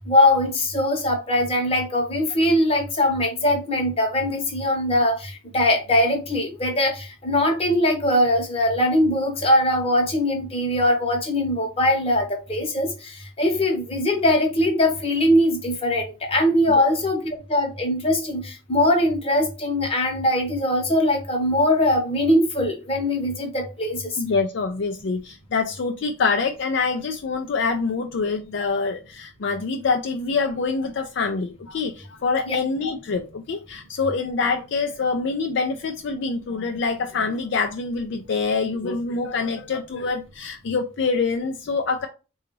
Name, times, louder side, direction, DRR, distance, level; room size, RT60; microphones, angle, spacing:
voice 1, 0.0-24.2 32.5-32.6, left 1 dB, 30° left, 0.9 m, -21 dB
voice 2, 24.2-42.1, left 4 dB, 60° left, 0.4 m, -25 dB
3.8 x 2.3 x 3.0 m
head